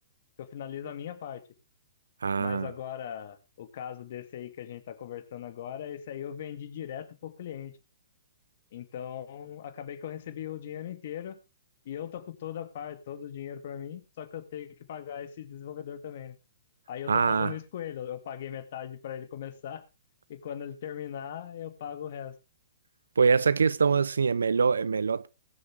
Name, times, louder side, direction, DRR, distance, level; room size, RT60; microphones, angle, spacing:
voice 1, 0.4-1.4 2.4-7.7 8.7-11.4 11.9-16.4 16.9-19.8 20.3-22.3, left 9 dB, 55° left, 2.1 m, -39 dB
voice 2, 2.2-2.7 17.1-17.5 23.2-25.3, right 5 dB, 90° right, 0.5 m, -24 dB
20.5 x 7.5 x 3.5 m
hypercardioid pair, 140°, 0 cm